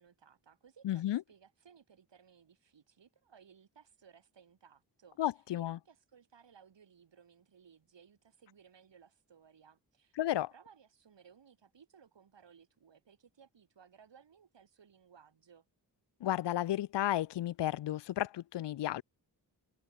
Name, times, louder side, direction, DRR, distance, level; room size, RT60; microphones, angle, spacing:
voice 1, 0.0-5.2 5.5-15.7, right 7 dB, 80° right, 7.0 m, -61 dB
voice 2, 0.8-1.2 5.2-5.8 10.2-10.5 16.2-19.0, left 13 dB, 75° left, 0.6 m, -33 dB
cardioid pair, 55°, 43 cm